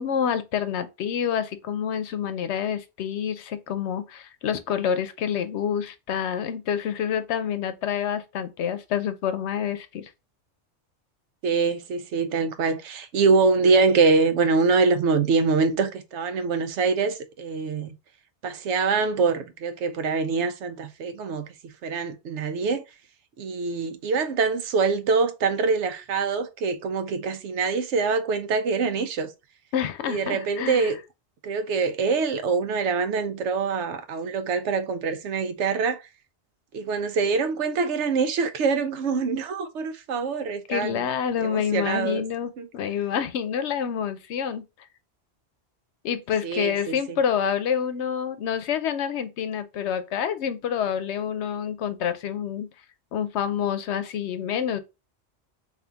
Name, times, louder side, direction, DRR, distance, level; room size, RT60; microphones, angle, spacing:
voice 1, 0.0-10.1 29.7-30.9 40.7-44.6 46.0-52.7 53.1-54.8, left 8 dB, 75° left, 0.9 m, -27 dB
voice 2, 11.4-18.0 18.4-22.8 23.4-29.3 30.1-31.0 31.4-36.0 36.7-41.0 41.4-42.2 42.6-42.7 46.4-47.2, right 4 dB, 90° right, 0.9 m, -24 dB
3.4 x 2.7 x 3.8 m
omnidirectional pair, 1.2 m